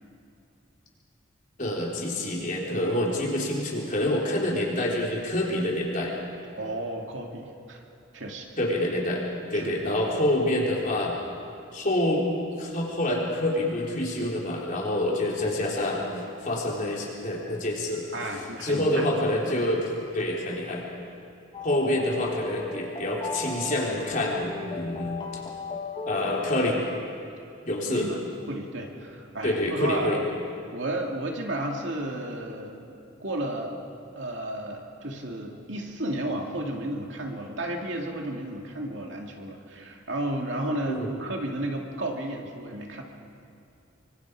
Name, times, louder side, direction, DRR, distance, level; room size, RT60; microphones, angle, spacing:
voice 1, 1.6-6.1 8.6-9.2 9.5-11.1 11.7-12.3 12.6-16.1 16.4-18.0 18.6-20.8 21.6-25.1 26.1-26.8 27.6-28.1 29.4-30.2 40.9-41.1, left 1 dB, 45° left, -3 dB, 4.0 m, -27 dB
voice 2, 6.6-7.8 8.1-8.5 9.5-9.7 18.1-19.4 27.9-28.2 28.5-30.2 30.7-33.7 34.2-43.0, right 1 dB, 70° right, 1 dB, 2.6 m, -33 dB
sound 1, 21.5-26.9, left 3 dB, 25° left, 1.7 m, -36 dB
25.0 x 24.5 x 4.9 m, 2.7 s
head